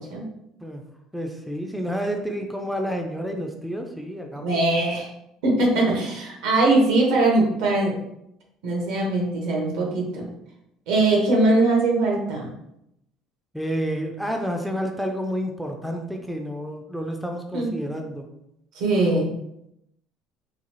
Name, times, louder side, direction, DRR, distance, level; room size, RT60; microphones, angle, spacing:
voice 1, 1.1-4.6 13.5-18.3, equal, ahead, 3 dB, 0.3 m, -29 dB
voice 2, 4.4-5.1 5.4-7.9 8.6-10.3 10.9-12.5 17.5-17.7 18.7-19.3, right 2 dB, 80° right, -1 dB, 1.1 m, -21 dB
3.9 x 2.3 x 3.0 m, 0.81 s
cardioid pair, 135°, 0 cm